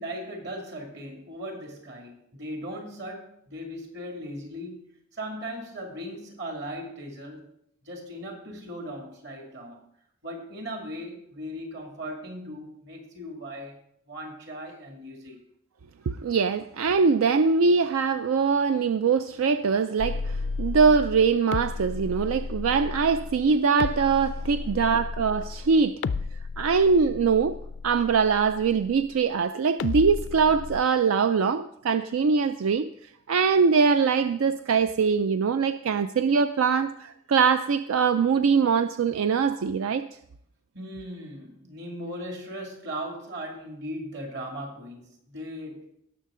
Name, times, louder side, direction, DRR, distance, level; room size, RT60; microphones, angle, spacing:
voice 1, 0.0-7.5 7.9-9.8 10.2-13.8 14.1-15.4 24.9-25.0 40.7-45.9, equal, 55° right, 2 dB, 2.4 m, -38 dB
voice 2, 16.1-26.0 26.6-27.6 27.8-32.9 33.3-40.1, right 5 dB, 85° right, 11 dB, 0.4 m, -22 dB
sound 1, 20.0-29.2 29.8-30.8, left 4 dB, 60° left, 0.3 m, -33 dB
17.5 x 6.4 x 3.7 m, 0.72 s
head